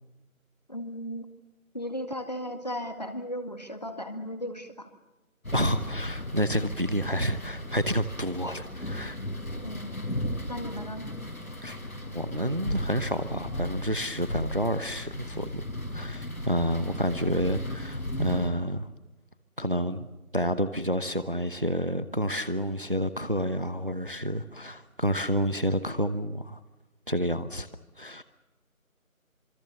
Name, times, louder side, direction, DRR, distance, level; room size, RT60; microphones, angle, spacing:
voice 1, 0.7-1.3 1.7-4.9 9.6-10.1 10.5-11.1 16.8-17.0, equal, 30° left, 7 dB, 2.0 m, -36 dB
sound 1, 5.4-18.5, left 1 dB, 80° left, 5.7 m, -35 dB
voice 2, 5.5-9.2 11.6-11.8 12.1-15.6 15.9-18.9 19.6-20.1 20.3-26.6 27.1-27.7 28.0-28.2, equal, 40° right, 13 dB, 1.0 m, -29 dB
27.0 x 22.0 x 6.9 m, 1.0 s
figure-of-eight pair, 175°, 42 cm